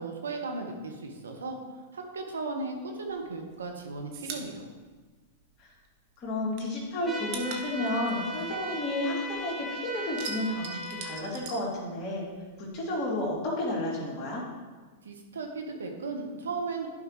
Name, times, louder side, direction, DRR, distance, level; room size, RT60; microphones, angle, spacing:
voice 1, 0.0-1.6 1.9-4.7 15.0-16.9, right 3 dB, 85° right, 3 dB, 1.2 m, -36 dB
sound 1, 3.1-5.9 6.2-9.5 9.8-12.4 12.6-13.7, right 6 dB, 50° right, 1.1 m, -43 dB
voice 2, 6.2-12.2 12.6-14.4, left 1 dB, 40° left, -4 dB, 2.5 m, -32 dB
sound 2, 7.0-11.2, right 1 dB, 10° right, 1.2 m, -37 dB
11.0 x 5.4 x 3.2 m, 1.4 s
hypercardioid pair, 110°, 0 cm